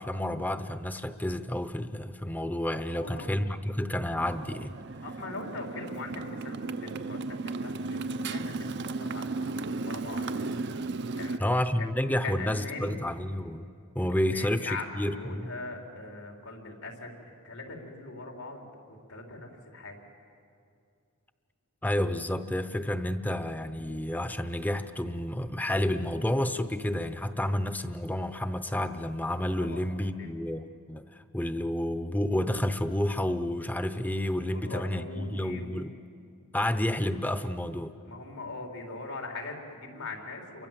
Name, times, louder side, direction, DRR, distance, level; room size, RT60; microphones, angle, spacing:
voice 1, 0.0-4.8 11.4-13.7 13.9-15.5 21.8-36.0 36.5-37.9, left 1 dB, 10° left, 11 dB, 0.8 m, -30 dB
voice 2, 2.9-3.4 5.0-10.3 11.2-11.9 12.2-13.0 14.1-17.2 17.4-20.0 29.6-30.3 34.5-35.8 38.0-40.7, left 3 dB, 85° left, 1 dB, 4.5 m, -41 dB
Motorcycle, 4.2-11.4, right 3 dB, 50° right, 0.7 m, -35 dB
29.5 x 23.5 x 7.6 m, 2.4 s
head